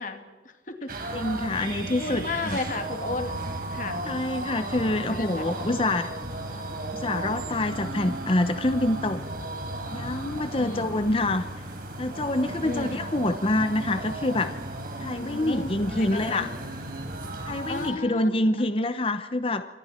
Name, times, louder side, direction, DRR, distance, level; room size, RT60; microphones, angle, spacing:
voice 1, 0.0-0.9 2.0-4.0 4.9-5.5 10.5-11.0 12.6-13.1 15.1-16.5 17.7-18.7, left 3 dB, 45° left, 6 dB, 2.5 m, -34 dB
sound 1, 0.9-17.9, right 1 dB, 55° right, 4.5 m, -35 dB
voice 2, 1.1-2.6 4.0-6.1 6.9-9.2 9.9-11.5 12.0-14.5 15.0-16.5 17.4-19.7, left 1 dB, 30° left, 10 dB, 0.9 m, -26 dB
27.5 x 25.5 x 4.5 m, 1.3 s
head